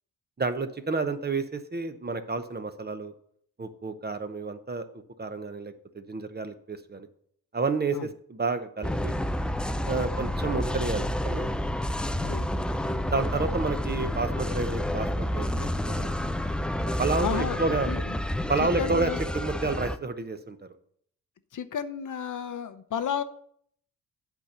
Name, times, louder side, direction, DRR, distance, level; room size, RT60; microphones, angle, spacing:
voice 1, 0.4-3.1 3.6-4.9 5.2-7.1 7.5-9.2 9.9-11.5 13.1-16.3 17.0-17.9 18.5-20.6, right 3 dB, 25° right, 9 dB, 0.9 m, -30 dB
sound 1, 8.8-20.0, left 1 dB, 5° left, 0.3 m, -29 dB
voice 2, 17.2-17.6 17.9-18.2 18.7-19.2 21.5-23.2, left 8 dB, 55° left, 11 dB, 0.7 m, -32 dB
8.2 x 4.4 x 6.7 m, 0.65 s
cardioid pair, 65°, 38 cm